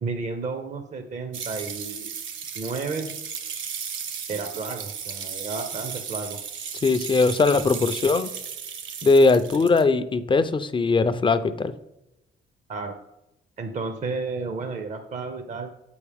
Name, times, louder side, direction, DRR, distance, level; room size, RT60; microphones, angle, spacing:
voice 1, 0.0-2.1 2.5-3.1 4.3-6.4 12.7-13.0 13.6-15.7, right 4 dB, 40° right, 7 dB, 0.7 m, -32 dB
sound 1, 1.3-9.8, right 7 dB, 75° right, 0.7 m, -35 dB
voice 2, 6.8-8.3 9.0-11.7, left 3 dB, 25° left, 11 dB, 0.5 m, -20 dB
8.6 x 4.3 x 3.5 m, 0.90 s
cardioid pair, 90°, 20 cm